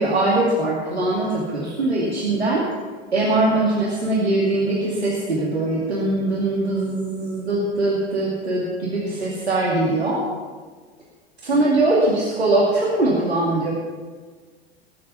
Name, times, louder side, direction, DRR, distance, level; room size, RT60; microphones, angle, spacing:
voice 1, 0.0-2.6 3.1-10.2 11.4-13.7, right 2 dB, 85° right, -5 dB, 2.3 m, -21 dB
19.0 x 7.2 x 5.6 m, 1.5 s
figure-of-eight pair, 85°, 31 cm